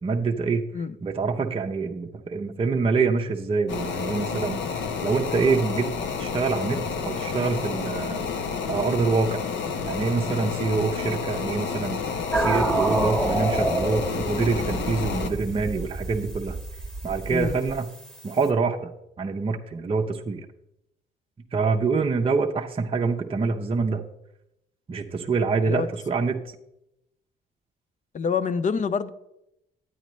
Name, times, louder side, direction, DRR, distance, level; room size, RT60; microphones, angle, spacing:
voice 1, 0.0-0.6 1.0-5.9 6.2-8.2 8.7-9.5 9.8-12.0 12.4-16.6 17.0-17.9 18.2-18.9 19.2-20.4 21.5-24.0 24.9-26.4, right 4 dB, 30° right, 0.7 m, -25 dB
sound 1, 3.7-15.3, left 5 dB, 70° left, 0.9 m, -30 dB
sound 2, 12.3-18.5, right 2 dB, 5° left, 1.2 m, -28 dB
voice 2, 28.1-29.1, left 6 dB, 40° left, 0.6 m, -26 dB
9.3 x 9.0 x 3.1 m
cardioid pair, 90°, 20 cm